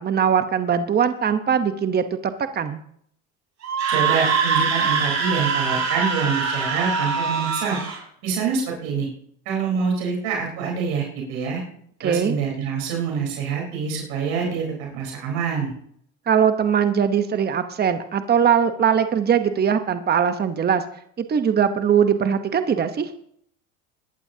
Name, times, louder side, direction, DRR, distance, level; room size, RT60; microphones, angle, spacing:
voice 1, 0.0-2.8 12.0-12.4 16.3-20.8 21.2-23.1, right 7 dB, 25° right, 9 dB, 1.0 m, -21 dB
Screaming, 3.6-8.0, right 5 dB, 45° right, 5.7 m, -23 dB
voice 2, 3.9-7.8 8.2-9.1 9.5-11.6 12.0-15.7, right 5 dB, 75° right, -1 dB, 4.0 m, -26 dB
21.5 x 11.0 x 2.8 m, 0.67 s
supercardioid pair, 95°, 37 cm